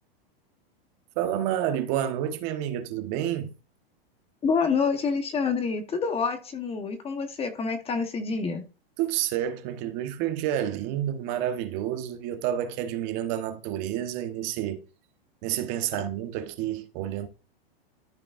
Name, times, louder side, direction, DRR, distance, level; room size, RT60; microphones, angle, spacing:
voice 1, 1.2-3.5 9.0-14.8 15.4-17.3, right 11 dB, 45° right, 1.1 m, -29 dB
voice 2, 4.4-8.7, left 5 dB, 20° left, 1.0 m, -27 dB
13.0 x 5.1 x 2.4 m
hypercardioid pair, 125°, 30 cm